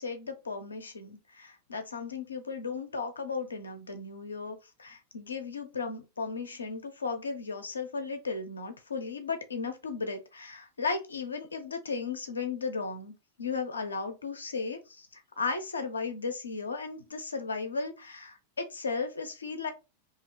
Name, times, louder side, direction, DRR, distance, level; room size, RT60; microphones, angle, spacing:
voice 1, 0.0-19.7, left 4 dB, 75° left, 0.7 m, -35 dB
2.9 x 2.7 x 2.8 m
figure-of-eight pair, 90°, 0 cm